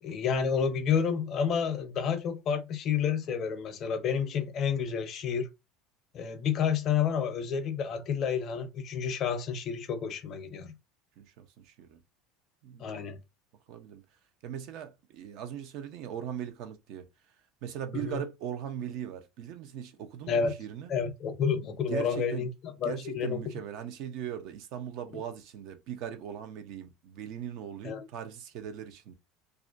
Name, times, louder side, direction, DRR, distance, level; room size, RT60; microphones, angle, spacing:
voice 1, 0.0-5.5 6.1-10.7 12.8-13.2 17.9-18.2 20.3-20.5 20.9-23.4 27.8-28.0, left 7 dB, 45° left, 0.5 m, -30 dB
voice 2, 11.2-12.0 12.6-13.2 13.7-14.0 14.4-17.1 17.6-20.9 21.9-22.5 22.8-29.1, right 9 dB, 65° right, 0.5 m, -39 dB
2.4 x 2.1 x 2.4 m
supercardioid pair, 110°, 0 cm